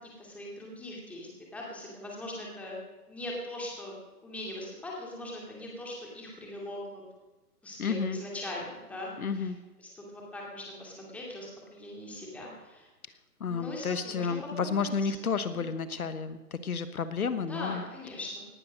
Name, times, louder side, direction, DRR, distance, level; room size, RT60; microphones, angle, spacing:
voice 1, 0.2-2.8 3.1-3.9 4.2-7.0 7.6-9.5 9.8-12.9 13.4-14.9 15.5-15.7 17.5-18.5, left 1 dB, 5° left, -3 dB, 2.5 m, -41 dB
voice 2, 7.8-8.2 9.2-9.6 13.4-17.8, left 5 dB, 65° left, 12 dB, 1.3 m, -31 dB
18.5 x 10.5 x 6.2 m, 1.2 s
hypercardioid pair, 160°, 46 cm